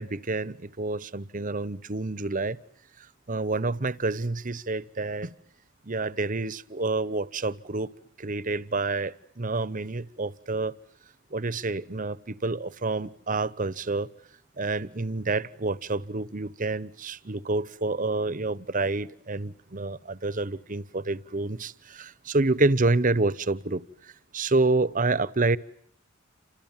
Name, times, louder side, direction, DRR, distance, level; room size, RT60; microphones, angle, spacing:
voice 1, 0.0-2.6 3.3-5.3 5.9-7.9 8.2-10.7 11.3-14.1 14.6-25.6, right 3 dB, 40° right, 1.1 m, -28 dB
29.5 x 27.0 x 7.4 m
head